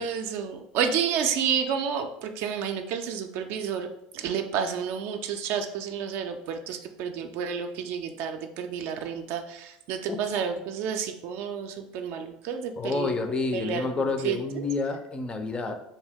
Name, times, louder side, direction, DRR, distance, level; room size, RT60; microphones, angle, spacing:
voice 1, 0.0-3.9 4.1-13.1 13.5-13.9 14.2-14.7, right 7 dB, 55° right, 6 dB, 0.3 m, -30 dB
voice 2, 12.8-15.7, left 3 dB, 25° left, 6 dB, 0.4 m, -29 dB
2.7 x 2.2 x 3.4 m, 0.78 s
hypercardioid pair, 80°, 4 cm